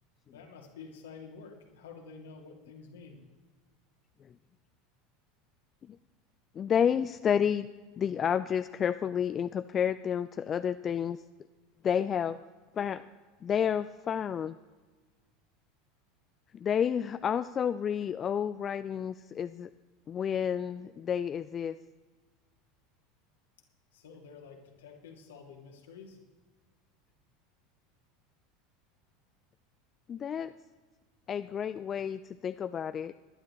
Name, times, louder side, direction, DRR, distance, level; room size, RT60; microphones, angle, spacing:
voice 1, 0.3-3.2 23.9-26.2, left 5 dB, 75° left, 1 dB, 2.3 m, -49 dB
voice 2, 6.6-7.7 8.0-11.2 11.8-12.4 12.8-13.0 13.4-14.6 16.5-19.7 20.1-21.8 30.1-30.5 31.3-33.1, left 8 dB, 35° left, 12 dB, 0.4 m, -30 dB
20.5 x 11.0 x 3.2 m, 1.3 s
figure-of-eight pair, 80°, 0 cm